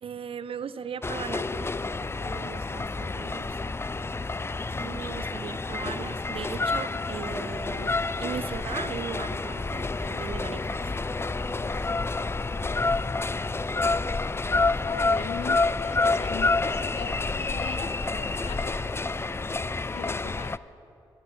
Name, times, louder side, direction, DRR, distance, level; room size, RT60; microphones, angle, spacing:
voice 1, 0.0-3.7 4.8-7.9 8.2-10.9, right 7 dB, 60° right, 15 dB, 0.4 m, -38 dB
sound 1, 1.0-20.6, left 3 dB, 20° left, 0.4 m, -29 dB
sound 2, 9.2-13.1 13.3-20.5, right 1 dB, 15° right, 2.5 m, -48 dB
voice 2, 14.9-18.8 19.9-20.6, left 9 dB, 80° left, 13 dB, 0.6 m, -39 dB
16.0 x 7.7 x 9.8 m, 2.8 s
supercardioid pair, 40°, 11 cm